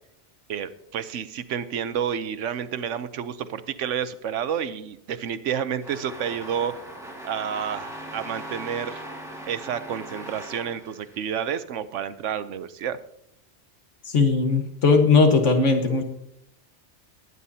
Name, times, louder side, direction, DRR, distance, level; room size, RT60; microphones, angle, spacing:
voice 1, 0.5-6.8 7.2-9.0 9.5-13.0, right 8 dB, 90° right, 13 dB, 1.1 m, -30 dB
sound 1, 5.8-11.6, right 1 dB, ahead, 2.1 m, -40 dB
voice 2, 14.1-16.0, left 4 dB, 90° left, 5 dB, 1.7 m, -19 dB
20.5 x 9.5 x 2.8 m, 0.74 s
omnidirectional pair, 1.2 m